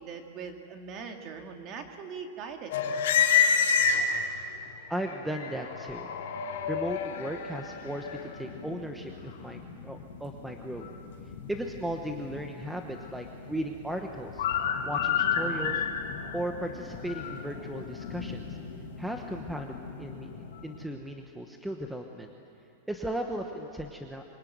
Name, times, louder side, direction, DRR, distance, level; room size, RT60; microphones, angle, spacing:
voice 1, 0.0-3.0, right 5 dB, 30° right, 5 dB, 2.2 m, -41 dB
sound 1, 2.7-4.4 5.0-20.8, left 6 dB, 65° left, 3.9 m, -31 dB
voice 2, 4.9-6.1 6.6-10.9 11.5-14.4 14.8-15.8 16.3-18.6 19.0-20.3 20.6-22.3 22.9-24.2, right 1 dB, 5° right, 4 dB, 1.0 m, -36 dB
24.5 x 23.5 x 9.4 m, 2.6 s
supercardioid pair, 165°, 0 cm